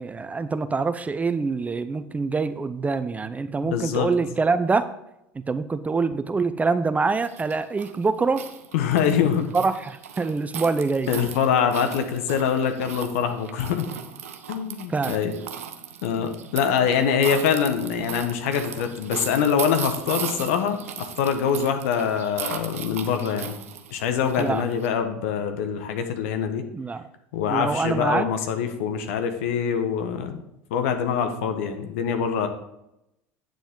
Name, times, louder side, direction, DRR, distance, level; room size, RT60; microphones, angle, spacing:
voice 1, 0.0-4.9 5.3-8.5 9.5-11.1 14.9-15.2 24.4-24.6 26.7-27.0 27.5-28.3, right 4 dB, 20° right, 12 dB, 0.6 m, -25 dB
voice 2, 3.6-4.1 8.7-9.5 11.1-13.9 14.5-15.4 16.0-23.5 23.9-26.6 27.3-30.4 30.7-32.5, left 7 dB, 70° left, 7 dB, 1.3 m, -24 dB
sound 1, 7.2-24.9, right 8 dB, 85° right, 0.8 m, -37 dB
9.2 x 7.0 x 3.8 m, 0.85 s
hypercardioid pair, 75°, 7 cm